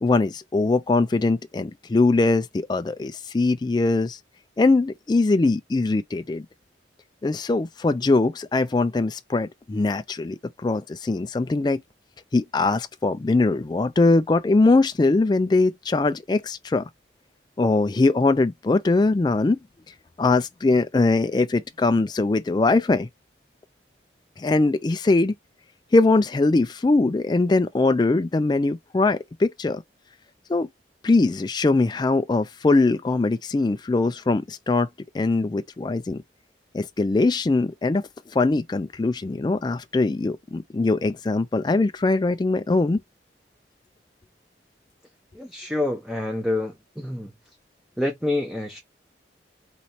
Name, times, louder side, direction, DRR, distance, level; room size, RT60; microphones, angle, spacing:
voice 1, 0.0-4.2 4.6-6.5 7.2-11.8 12.3-16.9 17.6-19.6 20.2-23.1 24.4-25.3 25.9-29.8 30.5-30.7 31.0-34.9 35.1-36.2 36.7-38.0 38.3-43.0, left 3 dB, 25° left, 0.3 m, -21 dB
voice 2, 45.3-47.3 48.0-48.8, left 2 dB, ahead, 0.8 m, -27 dB
4.1 x 3.1 x 4.2 m
head